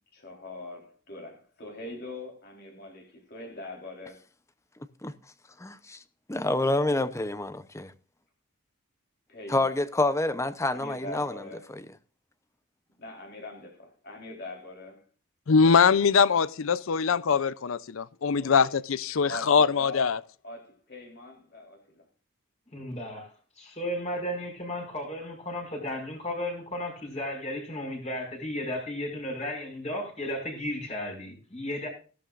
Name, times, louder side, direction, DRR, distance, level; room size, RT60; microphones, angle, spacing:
voice 1, 0.1-4.2 9.3-9.7 10.7-11.6 13.0-15.0 18.4-18.7 19.3-21.8, left 2 dB, 50° left, 3.7 m, -42 dB
voice 2, 5.6-6.0 6.3-7.9 9.5-11.4 11.7-11.9, left 2 dB, 15° left, 0.7 m, -28 dB
voice 3, 15.5-20.2, left 5 dB, 70° left, 0.5 m, -22 dB
voice 4, 22.7-31.9, left 1 dB, 30° left, 5.5 m, -34 dB
15.5 x 12.5 x 2.5 m
head